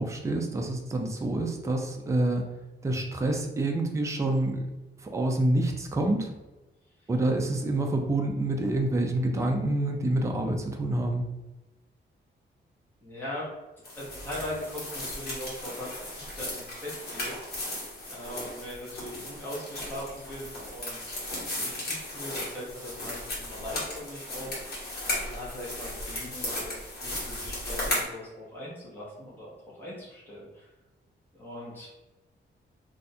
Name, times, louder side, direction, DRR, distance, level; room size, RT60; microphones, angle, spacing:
voice 1, 0.0-2.4 2.8-4.7 5.1-6.3 7.1-11.3, right 1 dB, 15° right, 2 dB, 0.4 m, -27 dB
voice 2, 13.0-13.5 13.8-17.7 18.1-21.1 21.6-24.6 25.2-30.7 31.3-31.9, left 1 dB, 10° left, -7 dB, 0.9 m, -40 dB
sound 1, 13.8-28.0, left 1 dB, 50° left, 1.3 m, -36 dB
2.6 x 2.4 x 4.1 m, 1.1 s
wide cardioid pair, 160°, 20 cm